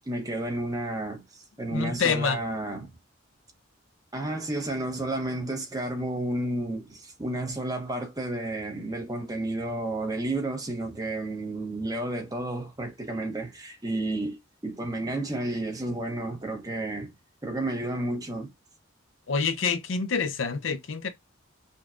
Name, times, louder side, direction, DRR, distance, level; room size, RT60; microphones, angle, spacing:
voice 1, 0.1-2.9 4.1-17.1 17.4-18.5, right 2 dB, 20° right, 0.9 m, -31 dB
voice 2, 1.7-2.4 19.3-21.1, left 5 dB, 75° left, 0.6 m, -27 dB
5.1 x 2.2 x 2.5 m
head